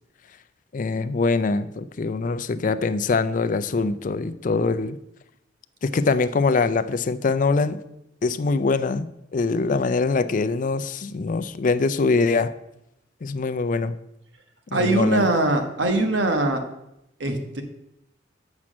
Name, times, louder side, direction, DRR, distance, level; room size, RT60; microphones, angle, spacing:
voice 1, 0.7-5.0 5.8-7.8 8.2-12.5 13.2-13.9 14.7-15.3, left 4 dB, 45° left, 13 dB, 0.4 m, -23 dB
voice 2, 14.7-16.6 17.2-17.6, right 2 dB, 75° right, 5 dB, 1.2 m, -22 dB
7.3 x 6.0 x 6.2 m, 0.83 s
head